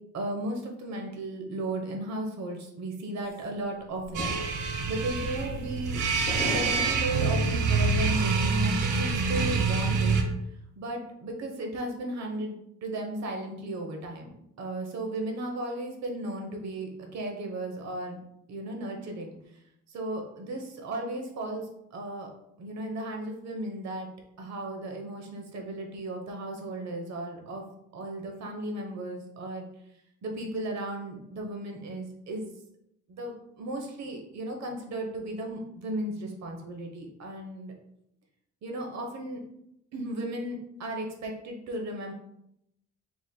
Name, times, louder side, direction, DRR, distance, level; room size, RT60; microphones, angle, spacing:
voice 1, 0.1-6.0 6.4-10.2 10.8-18.2 18.5-19.4 19.9-22.3 22.6-24.1 24.4-27.6 27.9-29.7 30.2-32.5 33.1-37.7 38.6-39.4 39.9-42.1, right 1 dB, 65° right, 2 dB, 1.0 m, -35 dB
sound 1, 3.2-3.4 4.0-4.7 5.0-5.3 6.3-7.9, left 2 dB, 30° left, 0.9 m, -38 dB
sound 2, 4.1-10.2, right 4 dB, 80° right, 0.8 m, -26 dB
4.8 x 3.8 x 2.2 m, 0.79 s
cardioid pair, 90°, 30 cm